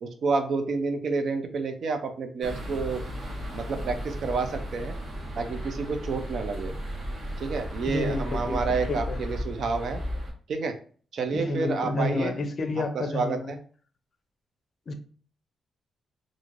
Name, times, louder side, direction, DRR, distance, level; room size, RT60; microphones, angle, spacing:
voice 1, 0.0-3.0 3.5-5.0 5.4-6.7 7.4-10.0 10.5-10.8 11.1-12.3 12.9-13.6, right 4 dB, 65° right, 7 dB, 0.4 m, -29 dB
sound 1, 2.4-10.3, equal, 50° right, 0.8 m, -34 dB
voice 2, 7.9-8.6 8.9-9.2 11.3-13.5 14.9-15.0, left 2 dB, 45° left, 8 dB, 0.4 m, -30 dB
3.1 x 2.5 x 2.4 m, 0.43 s
cardioid pair, 120°, 0 cm